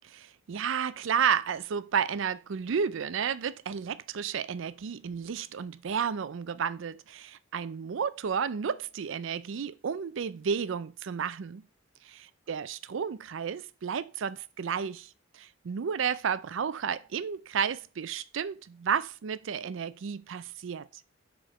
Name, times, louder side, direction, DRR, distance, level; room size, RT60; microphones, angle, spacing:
voice 1, 0.0-11.7 12.0-21.0, right 7 dB, 65° right, 0.4 m, -32 dB
5.1 x 4.4 x 5.9 m
head